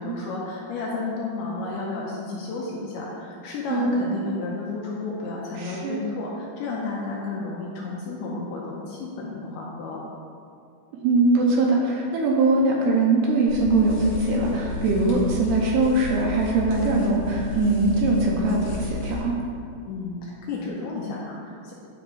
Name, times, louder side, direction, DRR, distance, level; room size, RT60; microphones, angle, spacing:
voice 1, 0.0-10.0 19.9-21.7, left 3 dB, 80° left, -4 dB, 2.4 m, -32 dB
voice 2, 5.6-6.0 11.0-19.3, right 2 dB, 75° right, -2 dB, 2.6 m, -21 dB
sound 1, 13.5-19.2, left 4 dB, 60° left, 2.2 m, -32 dB
10.0 x 3.6 x 4.7 m, 2.4 s
omnidirectional pair, 5.2 m